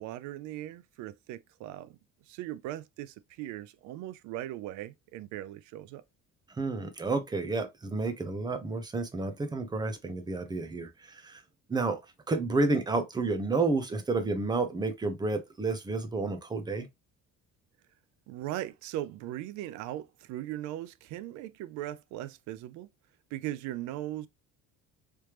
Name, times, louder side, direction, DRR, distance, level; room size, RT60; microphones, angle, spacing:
voice 1, 0.0-2.0 2.3-6.0 18.3-22.9 23.3-24.3, right 13 dB, 85° right, 0.5 m, -39 dB
voice 2, 6.6-11.4 11.7-12.0 12.3-16.9, right 3 dB, 15° right, 0.6 m, -30 dB
3.3 x 3.1 x 2.9 m
cardioid pair, 150°, 29 cm